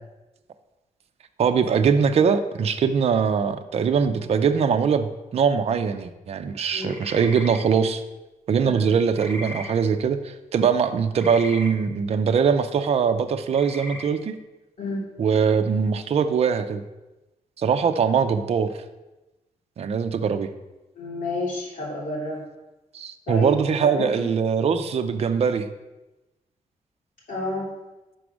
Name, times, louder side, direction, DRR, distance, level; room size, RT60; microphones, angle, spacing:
voice 1, 1.4-8.0 8.5-14.4 15.2-16.8 17.6-18.7 19.8-20.5 22.9-25.7, right 6 dB, 50° right, 8 dB, 0.5 m, -22 dB
sound 1, 6.8-7.6 9.1-9.7 11.2-11.7 13.5-14.0, left 1 dB, 15° left, 1.1 m, -37 dB
voice 2, 20.9-22.4 23.3-23.5 23.8-24.3 27.3-27.7, left 2 dB, 70° left, -6 dB, 2.9 m, -30 dB
6.1 x 4.8 x 6.2 m, 1.0 s
wide cardioid pair, 160°, 14 cm